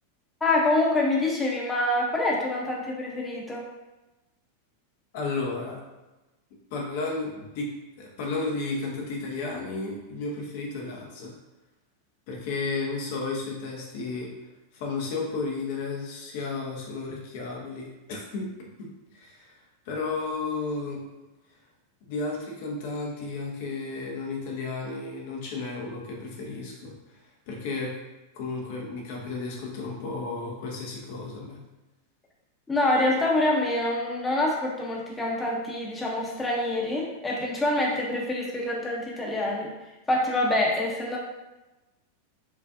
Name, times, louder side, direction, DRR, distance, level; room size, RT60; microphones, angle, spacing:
voice 1, 0.4-3.7 32.7-41.2, left 2 dB, 15° left, -2 dB, 0.8 m, -26 dB
voice 2, 5.1-5.8 6.7-7.7 8.0-11.3 12.3-14.3 14.7-18.5 18.8-18.9 19.1-19.4 19.9-21.0 22.1-26.9 27.5-27.9 28.4-31.6, left 3 dB, 55° left, -1 dB, 0.7 m, -33 dB
4.6 x 2.4 x 2.6 m, 1.1 s
figure-of-eight pair, 90°, 0 cm